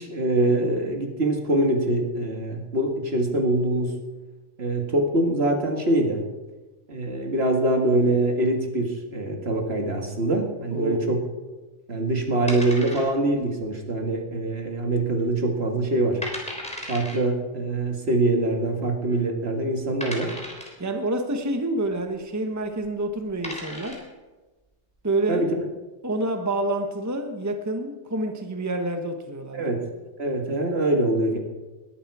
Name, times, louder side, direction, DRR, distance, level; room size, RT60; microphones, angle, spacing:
voice 1, 0.0-4.0 4.6-6.2 6.9-11.2 11.9-16.2 16.9-20.3 25.3-25.5 29.5-29.8 30.2-31.4, right 2 dB, 55° right, 3 dB, 2.1 m, -24 dB
voice 2, 10.7-11.1 20.8-24.0 25.0-25.4 26.0-29.8, right 2 dB, 15° right, 6 dB, 1.0 m, -28 dB
sound 1, 12.5-13.4 13.7-13.8 14.4-14.8 15.2-15.3 15.9-16.0 16.2-17.2 18.3-18.4 19.0-19.1 20.0-20.8 22.7-22.8 23.2-24.1, equal, 5° left, 3.5 m, -35 dB
20.5 x 11.5 x 4.8 m, 1.2 s
omnidirectional pair, 1.3 m